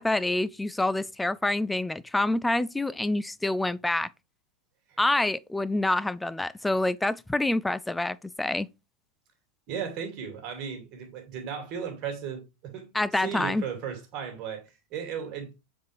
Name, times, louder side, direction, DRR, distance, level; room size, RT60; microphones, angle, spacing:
voice 1, 0.0-4.1 5.0-8.7 12.9-13.6, left 2 dB, 5° left, 0.3 m, -27 dB
voice 2, 9.7-15.5, right 7 dB, 40° right, 2.4 m, -36 dB
7.2 x 4.3 x 3.3 m
figure-of-eight pair, 90°, 0 cm